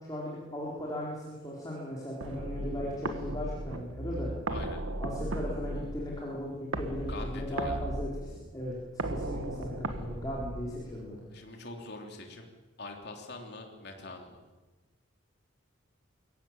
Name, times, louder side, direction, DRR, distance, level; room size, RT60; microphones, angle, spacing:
voice 1, 0.1-4.3 5.0-8.7 9.1-11.2, left 1 dB, 20° left, -5 dB, 4.2 m, -37 dB
sound 1, 2.2-11.2, right 1 dB, 80° right, 1.7 m, -37 dB
voice 2, 4.5-4.8 7.1-7.8 11.3-12.5 12.8-14.4, left 2 dB, 50° left, 2 dB, 3.4 m, -44 dB
23.0 x 16.5 x 9.0 m, 1.2 s
head